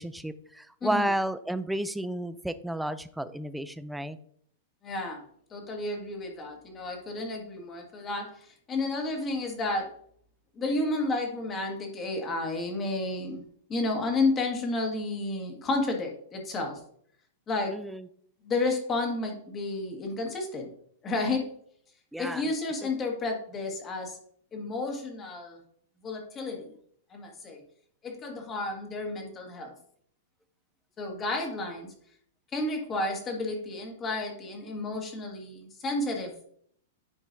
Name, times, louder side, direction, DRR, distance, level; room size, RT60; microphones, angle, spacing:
voice 1, 0.0-4.2 17.7-18.1 22.1-22.4 22.8-22.9, right 1 dB, 5° right, 13 dB, 0.4 m, -32 dB
voice 2, 4.8-5.2 5.5-9.9 10.5-13.4 13.7-16.8 17.5-17.8 18.4-20.7 21.0-21.5 22.2-24.2 24.5-25.6 26.0-26.7 27.1-27.6 28.0-29.7 31.0-31.9 32.5-36.6, left 2 dB, 20° left, 2 dB, 1.6 m, -31 dB
10.0 x 4.5 x 2.6 m, 0.63 s
hypercardioid pair, 145°, 0 cm